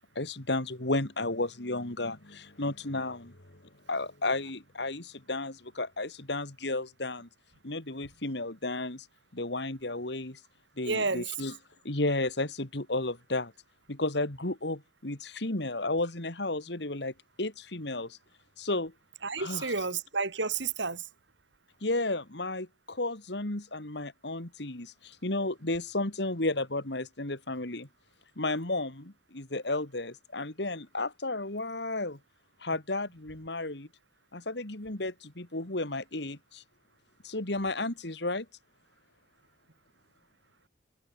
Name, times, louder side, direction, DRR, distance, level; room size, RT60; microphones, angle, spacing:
voice 1, 0.0-3.6 3.9-7.3 7.6-9.1 9.3-10.4 10.8-11.5 11.8-13.5 13.9-18.2 18.6-18.9 19.4-19.7 21.8-27.9 28.4-32.2 32.6-33.9 34.3-36.6 37.2-38.5, left 2 dB, 60° left, 2.5 m, -33 dB
voice 2, 10.8-11.3 19.2-21.1, right 4 dB, 70° right, 2.7 m, -31 dB
head